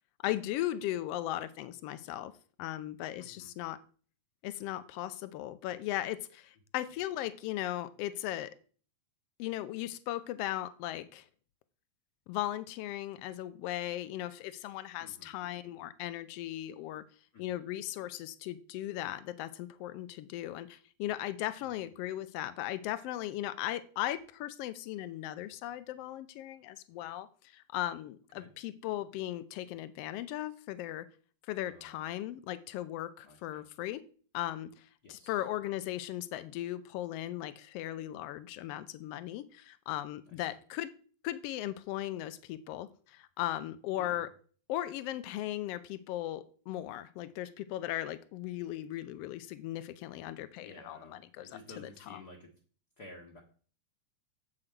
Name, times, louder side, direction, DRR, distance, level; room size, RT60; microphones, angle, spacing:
voice 1, 0.2-2.3 2.6-3.8 4.4-8.5 9.4-11.3 12.3-17.0 17.4-31.1 31.5-34.0 34.3-40.9 41.2-44.3 44.7-51.5 51.8-52.2, left 14 dB, 80° left, 13 dB, 1.4 m, -37 dB
voice 2, 3.2-3.5 15.0-15.3 17.3-17.6 21.6-21.7 28.3-28.5 31.6-32.1 33.2-33.6 35.0-35.5 40.3-40.6 43.9-44.2 50.6-52.5 53.0-53.4, left 2 dB, 45° left, 0 dB, 1.4 m, -53 dB
7.8 x 7.6 x 4.5 m, 0.42 s
omnidirectional pair, 3.4 m